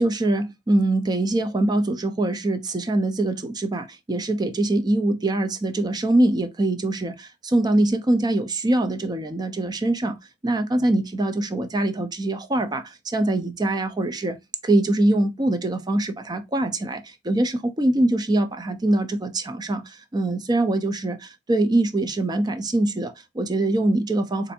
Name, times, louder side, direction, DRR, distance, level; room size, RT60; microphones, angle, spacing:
voice 1, 0.0-10.2 10.4-14.4 14.6-24.5, right 2 dB, 20° right, 0.5 m, -23 dB
4.2 x 2.6 x 2.6 m
head